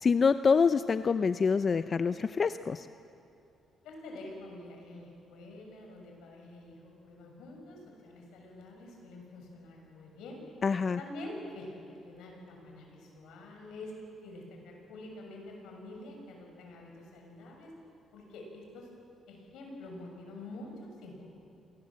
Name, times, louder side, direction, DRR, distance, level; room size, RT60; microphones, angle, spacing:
voice 1, 0.0-2.9 10.6-11.0, left 5 dB, 40° left, 12 dB, 0.6 m, -26 dB
voice 2, 3.8-10.4 11.0-13.9 14.2-17.7 18.1-18.9 19.3-21.3, left 1 dB, 85° left, 1 dB, 6.4 m, -47 dB
26.5 x 19.0 x 7.6 m, 2.8 s
cardioid pair, 90°, 0 cm